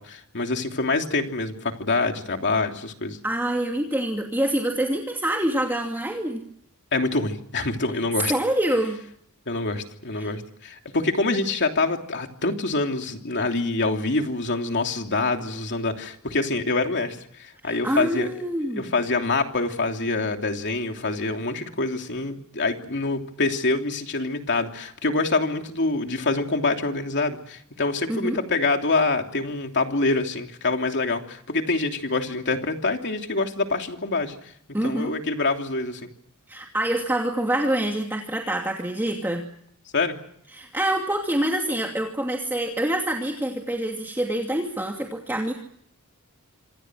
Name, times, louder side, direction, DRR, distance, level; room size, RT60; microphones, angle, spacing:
voice 1, 0.0-3.2 6.9-8.3 9.5-18.3 18.8-34.4 34.8-36.1 39.9-40.2, left 3 dB, 55° left, 4 dB, 3.1 m, -25 dB
voice 2, 3.2-6.4 8.3-9.0 10.2-10.3 17.6-18.9 28.1-28.4 34.7-35.1 36.5-39.4 40.5-45.5, right 1 dB, 10° right, 1 dB, 2.6 m, -26 dB
27.0 x 26.0 x 6.3 m, 0.67 s
head